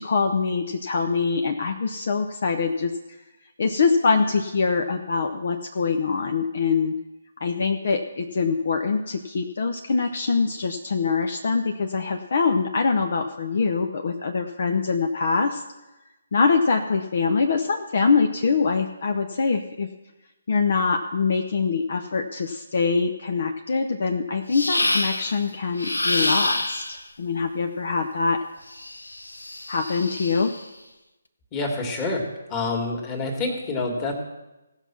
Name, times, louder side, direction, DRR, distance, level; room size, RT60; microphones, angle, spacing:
voice 1, 0.0-2.9 3.6-6.9 7.4-15.6 16.3-19.9 20.5-28.4 29.7-30.5, left 4 dB, 55° left, 5 dB, 0.8 m, -24 dB
sound 1, 24.5-25.4 25.8-27.0 28.7-30.6, left 2 dB, 85° left, 0.8 m, -27 dB
voice 2, 31.5-32.2 32.5-34.1, left 3 dB, 20° left, 2 dB, 2.1 m, -27 dB
16.5 x 5.8 x 6.0 m, 1.0 s
figure-of-eight pair, 145°, 0 cm